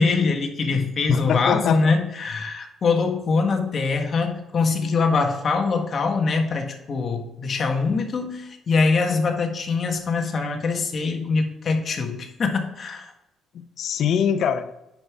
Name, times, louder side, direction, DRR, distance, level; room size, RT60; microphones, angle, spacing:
voice 1, 0.0-13.1, left 4 dB, 45° left, 4 dB, 1.5 m, -23 dB
voice 2, 1.1-1.9 13.5-14.7, left 7 dB, 65° left, 11 dB, 0.7 m, -23 dB
9.3 x 5.4 x 3.6 m, 0.95 s
cardioid pair, 100°, 0 cm